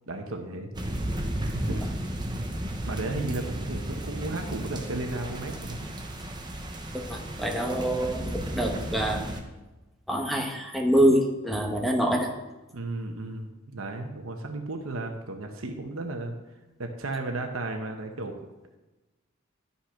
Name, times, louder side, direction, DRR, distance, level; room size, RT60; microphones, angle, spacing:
voice 1, 0.1-0.7 1.4-1.9 2.8-5.8 12.7-16.3 16.8-18.4, right 2 dB, 75° right, 4 dB, 1.0 m, -34 dB
sound 1, 0.7-9.4, right 1 dB, 20° right, 0.9 m, -34 dB
voice 2, 6.9-9.3 10.1-12.3, right 1 dB, ahead, 1 dB, 1.1 m, -25 dB
12.0 x 5.6 x 5.8 m, 1.1 s
head